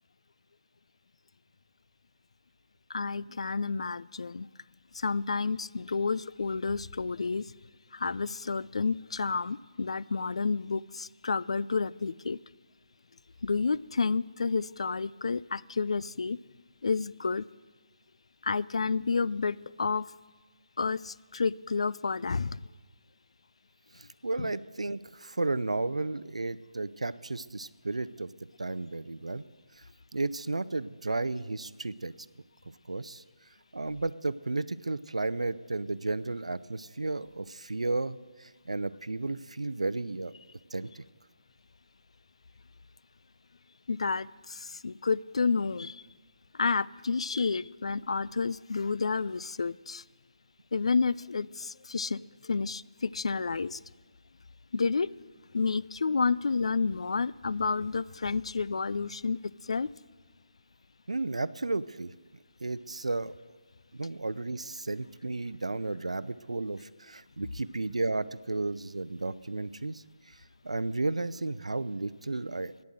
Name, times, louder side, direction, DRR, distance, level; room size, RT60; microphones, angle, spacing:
voice 1, 2.9-4.5 4.9-7.5 7.9-12.4 13.4-16.4 16.8-17.4 18.4-20.1 20.8-22.6 24.4-24.5 43.9-46.0 46.6-50.0 50.7-53.8 54.7-55.1 55.5-59.4 59.7-59.9, left 4 dB, 65° left, 20 dB, 0.3 m, -30 dB
voice 2, 24.0-28.3 28.6-29.4 29.8-29.9 30.1-32.1 32.9-33.2 33.7-40.3 40.7-41.0 61.1-62.1 62.6-63.3 63.9-70.3 70.6-72.8, right 2 dB, 85° right, 16 dB, 0.5 m, -33 dB
11.5 x 9.6 x 7.7 m, 1.4 s
figure-of-eight pair, 150°, 3 cm